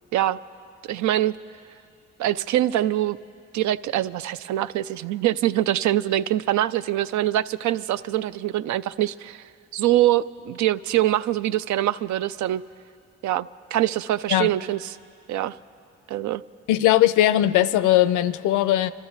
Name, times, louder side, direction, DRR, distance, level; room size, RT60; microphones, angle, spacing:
voice 1, 0.8-1.4 2.2-3.2 3.5-9.4 9.7-12.6 13.2-14.8 15.3-15.6 16.1-16.4, right 13 dB, 70° right, 16 dB, 0.5 m, -24 dB
voice 2, 16.7-18.9, left 13 dB, 85° left, 15 dB, 0.5 m, -19 dB
25.5 x 13.0 x 4.0 m, 2.4 s
cardioid pair, 90°, 30 cm